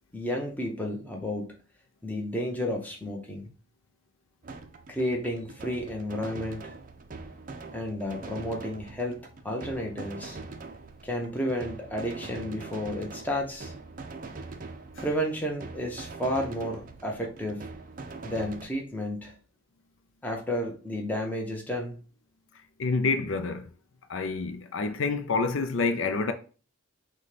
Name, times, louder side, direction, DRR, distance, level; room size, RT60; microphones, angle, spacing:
voice 1, 0.1-1.5 2.0-3.5 4.9-6.7 7.7-10.4 11.0-13.7 15.0-17.7 18.2-19.3 20.2-22.0, equal, 10° left, 0.7 m, -32 dB
sound 1, 4.4-18.6, right 3 dB, 40° right, 0.4 m, -43 dB
voice 2, 22.8-23.6 24.1-26.3, left 4 dB, 70° left, 0.5 m, -27 dB
6.0 x 2.2 x 3.3 m
head